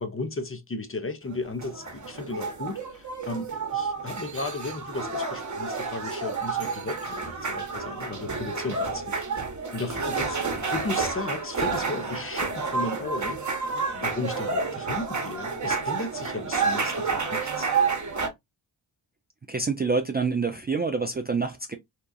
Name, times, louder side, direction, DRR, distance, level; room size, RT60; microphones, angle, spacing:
voice 1, 0.0-9.2 9.7-13.4 13.9-17.7, left 3 dB, 25° left, 0.7 m, -35 dB
sound 1, 1.3-18.3, right 4 dB, 35° right, 1.0 m, -30 dB
voice 2, 19.5-21.8, right 4 dB, 20° right, 0.4 m, -27 dB
2.9 x 2.3 x 2.2 m
supercardioid pair, 40°, 48 cm